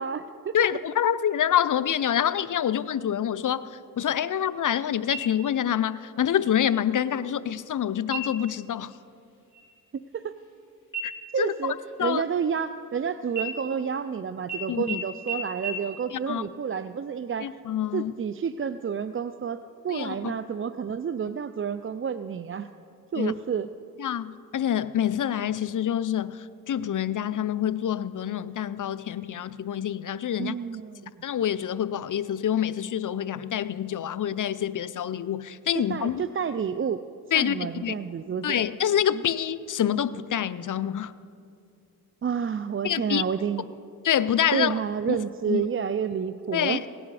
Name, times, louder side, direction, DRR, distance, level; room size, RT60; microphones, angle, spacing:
voice 1, 0.0-0.5 10.1-10.3 11.3-11.7 12.0-17.5 17.9-22.7 23.1-23.7 30.3-31.1 35.7-37.0 37.3-38.6 39.1-39.2 42.2-43.6 44.5-46.8, right 7 dB, 35° right, 12 dB, 0.4 m, -30 dB
voice 2, 0.5-3.6 4.0-8.9 11.0-11.1 11.4-12.2 14.7-15.0 16.1-16.4 17.4-18.1 19.9-20.3 23.2-23.3 24.0-30.5 31.2-36.2 37.3-37.6 37.8-37.9 38.4-41.1 42.8-43.2 44.0-44.8 45.1-45.2 45.5-45.6 46.5-46.8, left 10 dB, 55° left, 15 dB, 0.6 m, -26 dB
sound 1, 5.1-5.8 6.2-6.3 6.8-7.3 8.0-8.6 9.0-9.2 9.5-10.6 10.9-12.9 13.3-14.1 14.5-14.6 14.9-15.0 15.3-15.4 15.6-15.7, right 3 dB, 30° left, 3.4 m, -36 dB
17.5 x 11.0 x 4.8 m, 2.5 s
cardioid pair, 50°, 38 cm